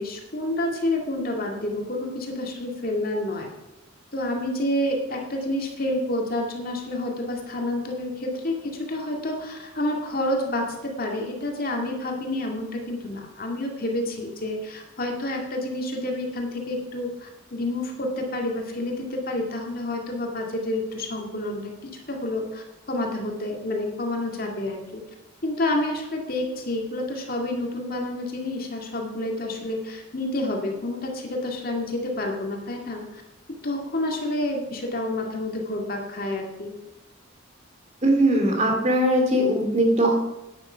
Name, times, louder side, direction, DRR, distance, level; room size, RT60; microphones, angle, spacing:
voice 1, 0.0-3.5 4.1-21.7 22.1-25.0 25.4-33.2 33.6-36.7, left 1 dB, 45° left, 1 dB, 2.0 m, -29 dB
voice 2, 38.0-40.1, right 1 dB, 35° right, 2 dB, 2.6 m, -20 dB
10.5 x 9.6 x 5.6 m, 0.97 s
head